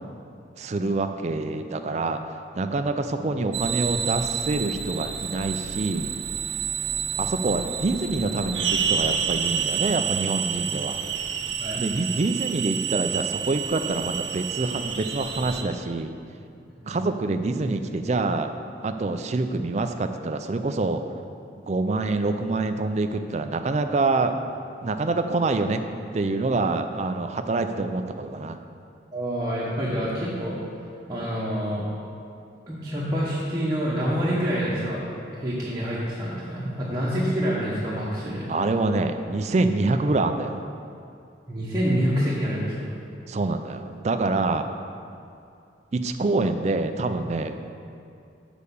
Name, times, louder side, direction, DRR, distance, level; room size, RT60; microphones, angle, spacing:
voice 1, 0.6-2.2 2.6-6.1 7.2-11.0 11.8-16.1 16.9-18.5 18.8-21.0 21.6-24.4 24.8-25.8 26.1-28.6 38.5-40.6 43.3-44.7 45.9-47.6, right 3 dB, 35° right, 8 dB, 0.4 m, -26 dB
sound 1, 3.5-15.6, right 7 dB, 75° right, 0.7 m, -29 dB
voice 2, 29.1-30.5 31.1-31.9 32.7-38.5 41.5-42.8, equal, 20° right, -8 dB, 1.1 m, -27 dB
6.6 x 5.1 x 7.0 m, 2.5 s
head